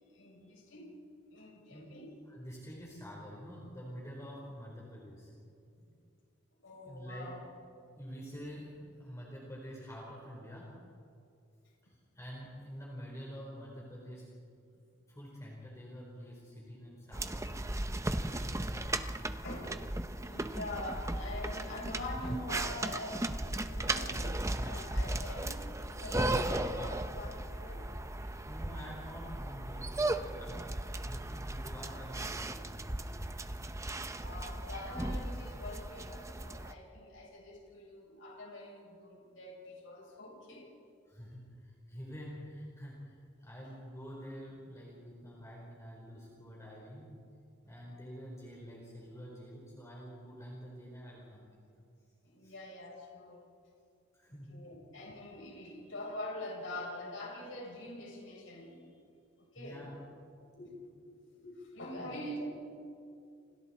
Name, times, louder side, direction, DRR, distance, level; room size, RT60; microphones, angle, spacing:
voice 1, 0.1-0.9 1.3-2.2 6.6-7.4 7.8-7.9 19.4-19.8 20.2-27.9 34.1-40.7 52.2-53.4 54.3-58.8 59.4-59.9 60.5-60.8 61.0-62.5, left 1 dB, 85° left, -2 dB, 6.7 m, -45 dB
voice 2, 2.3-5.3 5.7-5.8 6.8-7.4 7.9-10.8 11.8-14.4 15.1-17.5 18.1-19.2 28.5-30.7 31.0-33.2 41.1-47.2 47.7-51.6 52.4-52.5 54.1-54.6 59.6-60.0 62.0-62.2, equal, 15° left, -3 dB, 4.1 m, -47 dB
sound 1, 17.1-36.7, right 1 dB, 15° right, 0.8 m, -36 dB
29.5 x 27.5 x 4.3 m, 2.4 s
head